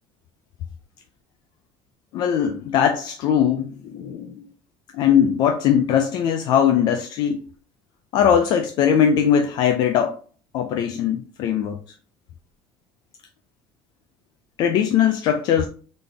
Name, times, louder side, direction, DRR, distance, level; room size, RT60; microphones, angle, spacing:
voice 1, 2.1-4.4 4.9-7.4 8.1-10.2 10.5-11.8 14.6-15.7, left 8 dB, 50° left, 0.4 m, -20 dB
4.0 x 3.4 x 3.4 m
cardioid pair, 175°, 9 cm